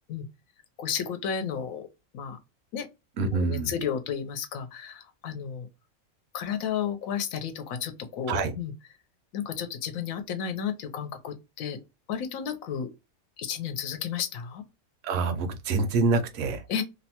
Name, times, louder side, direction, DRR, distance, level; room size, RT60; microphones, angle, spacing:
voice 1, 0.8-1.9 2.1-2.4 2.7-2.9 3.3-5.7 6.3-8.7 9.3-11.8 12.1-12.9 13.4-14.6 16.7-16.8, left 8 dB, 80° left, 1.0 m, -32 dB
voice 2, 3.2-3.7 8.3-8.5 15.0-16.6, right 3 dB, 70° right, 0.9 m, -26 dB
2.7 x 2.1 x 2.8 m
omnidirectional pair, 1.4 m